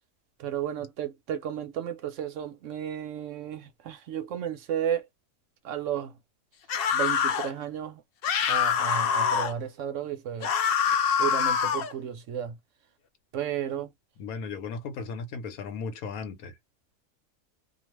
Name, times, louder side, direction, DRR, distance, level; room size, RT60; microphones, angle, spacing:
voice 1, 0.4-5.1 5.6-6.2 6.9-8.0 8.5-10.5 11.2-12.6 13.3-13.9, right 9 dB, 70° right, 0.9 m, -33 dB
sound 1, 6.7-7.5 8.2-9.5 10.4-11.9, left 7 dB, 70° left, 0.5 m, -25 dB
voice 2, 14.2-16.6, left 5 dB, 85° left, 1.2 m, -36 dB
2.4 x 2.4 x 3.1 m
omnidirectional pair, 1.5 m